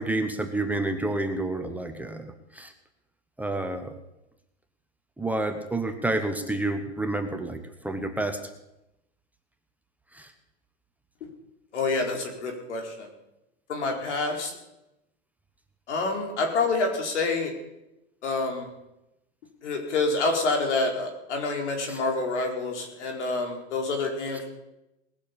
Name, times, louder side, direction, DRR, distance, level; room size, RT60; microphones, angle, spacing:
voice 1, 0.0-2.7 3.4-4.0 5.2-8.4 10.1-10.3 21.9-22.0, right 2 dB, 5° right, 5 dB, 0.9 m, -29 dB
voice 2, 11.7-13.1 13.7-14.5 15.9-17.5 18.2-18.7 19.6-24.5, left 3 dB, 80° left, 2 dB, 4.5 m, -27 dB
19.5 x 6.9 x 8.5 m, 0.91 s
hypercardioid pair, 135°, 34 cm